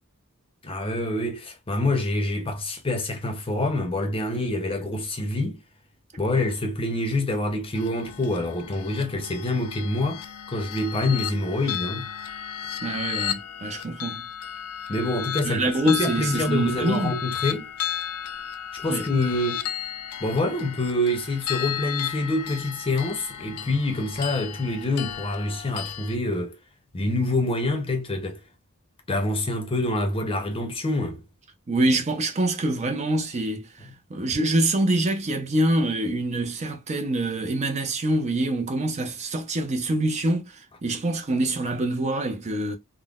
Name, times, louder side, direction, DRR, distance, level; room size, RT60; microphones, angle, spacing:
voice 1, 0.6-5.6 6.2-12.1 14.9-17.7 18.7-19.7 20.2-26.6 26.9-28.4 29.1-31.2, left 2 dB, 25° left, 0.7 m, -26 dB
sound 1, 7.7-26.2, left 9 dB, 85° left, 0.4 m, -34 dB
voice 2, 12.8-14.2 15.4-17.1 18.9-19.1 31.7-42.8, right 1 dB, 30° right, 0.5 m, -25 dB
3.6 x 2.1 x 2.3 m
head